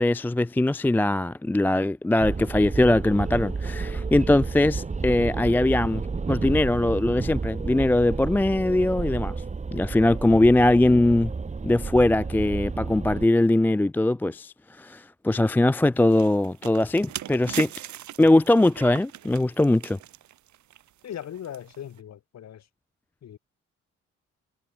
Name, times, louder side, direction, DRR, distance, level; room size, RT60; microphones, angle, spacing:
voice 1, 0.0-9.4 9.7-11.3 11.6-17.7 18.2-20.0, left 1 dB, 5° left, 0.3 m, -21 dB
sound 1, 2.2-13.3, right 4 dB, 25° right, 1.4 m, -31 dB
sound 2, 16.0-22.0, right 12 dB, 70° right, 1.4 m, -39 dB
voice 2, 21.0-22.7 23.2-23.4, left 10 dB, 60° left, 2.3 m, -39 dB
cardioid pair, 90°, 30 cm